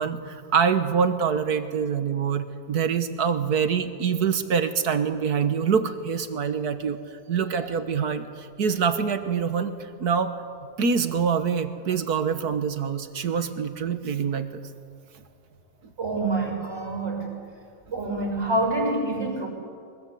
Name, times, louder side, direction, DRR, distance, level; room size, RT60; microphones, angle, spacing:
voice 1, 0.0-9.7 10.0-10.3 10.8-14.6, right 6 dB, 70° right, 9 dB, 1.8 m, -25 dB
voice 2, 16.0-17.3 17.9-19.5, right 2 dB, 40° right, 1 dB, 6.9 m, -26 dB
23.0 x 22.0 x 8.5 m, 2.2 s
omnidirectional pair, 1.8 m